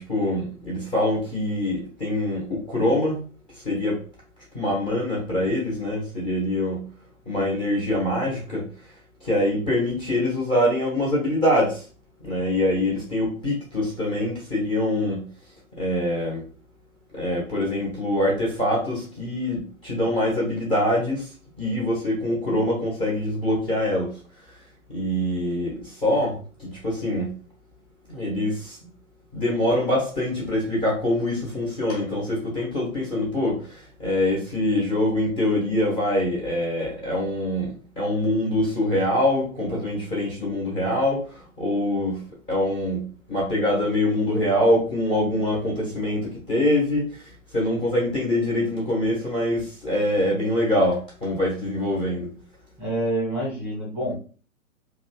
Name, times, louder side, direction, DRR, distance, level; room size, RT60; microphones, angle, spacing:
voice 1, 0.0-3.2 3.5-4.0 4.5-6.9 7.3-8.7 9.2-11.8 12.2-15.3 15.8-16.4 17.1-21.3 21.6-24.2 24.9-27.3 28.1-28.8 29.3-42.2 42.5-52.3, left 1 dB, 20° left, -5 dB, 1.0 m, -24 dB
voice 2, 52.8-54.2, right 1 dB, 5° right, -6 dB, 1.1 m, -27 dB
2.9 x 2.3 x 2.9 m, 0.38 s
figure-of-eight pair, 125°, 42 cm